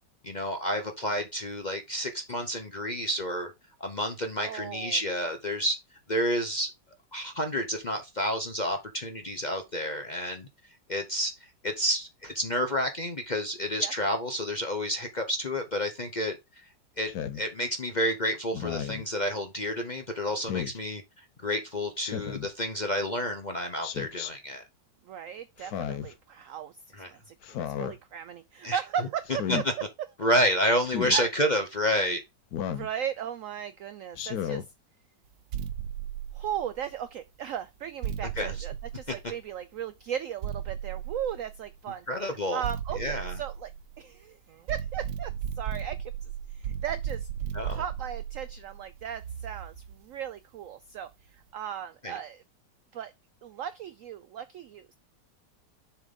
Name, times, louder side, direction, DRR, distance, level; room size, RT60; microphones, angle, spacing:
voice 1, 0.2-3.5 3.8-5.8 6.1-6.7 7.1-10.5 10.9-11.3 11.6-16.6 17.0-21.0 21.4-24.6 27.0-27.1 28.6-28.8 29.5-29.6 30.2-32.2 38.4-38.5 42.1-42.6 43.0-43.4 47.5-47.8 52.0-52.1, equal, 40° left, 0.6 m, -29 dB
voice 2, 4.4-5.0 13.8-13.9 25.1-29.6 31.1-31.3 32.7-34.7 36.3-42.0 42.5-43.7 44.0-47.3 47.7-52.4 52.9-53.1 53.4-54.9, right 9 dB, 85° right, 0.7 m, -37 dB
Speech synthesizer, 17.1-17.4 18.5-19.0 20.5-20.8 22.0-22.5 23.8-24.3 25.6-26.1 27.4-27.9 29.3-29.7 30.9-31.2 32.5-32.9 34.1-34.7, left 9 dB, 65° left, 1.1 m, -33 dB
sound 1, 35.5-37.0 38.0-39.6 40.4-41.8 42.6-44.2 44.7-50.0, right 9 dB, 70° right, 1.3 m, -36 dB
7.1 x 3.8 x 5.2 m
omnidirectional pair, 1.9 m